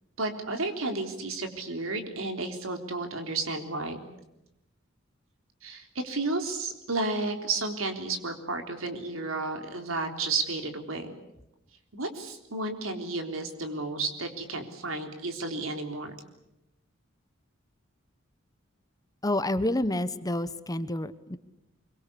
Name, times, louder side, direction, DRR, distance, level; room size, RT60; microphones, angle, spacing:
voice 1, 0.2-4.0 5.6-11.1 11.9-16.1, right 3 dB, 85° right, 5 dB, 3.8 m, -32 dB
voice 2, 19.2-21.4, left 1 dB, 20° left, 13 dB, 1.0 m, -28 dB
25.0 x 23.5 x 8.4 m, 0.88 s
head